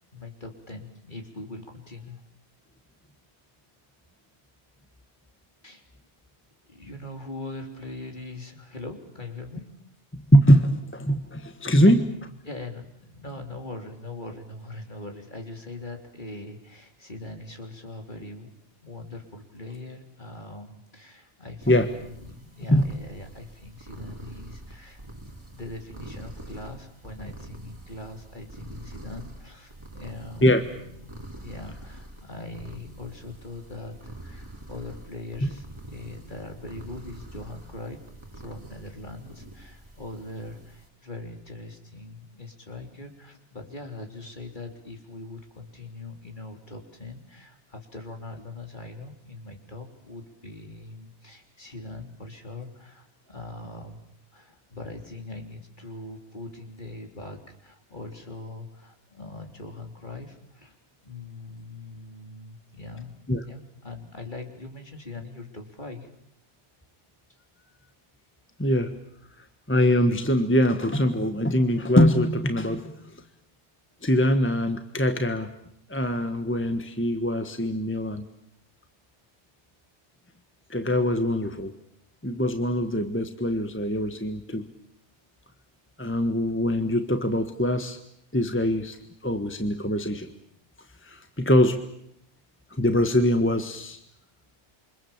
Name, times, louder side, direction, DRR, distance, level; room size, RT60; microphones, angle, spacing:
voice 1, 0.1-2.2 5.6-5.8 6.7-9.7 12.4-18.5 18.8-31.1 31.4-38.0 38.3-54.0 54.3-60.8 61.0-63.1 63.4-66.1, left 2 dB, 40° left, 3 dB, 3.8 m, -41 dB
voice 2, 10.1-12.3 21.7-21.9 22.7-22.9 30.4-30.6 63.3-63.4 68.6-69.0 69.7-73.2 74.0-75.5 75.9-78.3 80.7-81.7 82.2-84.7 86.0-88.0 88.3-89.0 89.2-90.3 91.0-91.8 92.8-94.0, equal, 10° left, 7 dB, 1.4 m, -23 dB
sound 1, 21.6-40.9, right 1 dB, 25° right, 3.4 m, -45 dB
28.0 x 25.0 x 7.4 m, 0.74 s
omnidirectional pair, 1.2 m